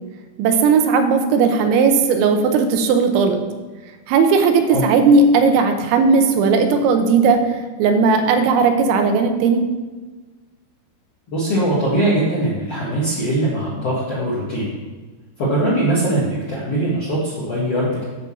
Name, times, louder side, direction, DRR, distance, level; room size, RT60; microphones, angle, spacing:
voice 1, 0.4-3.4 4.1-7.4 7.8-9.6, right 4 dB, 90° right, 6 dB, 3.2 m, -16 dB
voice 2, 11.3-14.7 15.4-18.0, right 1 dB, 50° left, -8 dB, 2.0 m, -21 dB
10.0 x 3.9 x 7.1 m, 1.3 s
omnidirectional pair, 5.2 m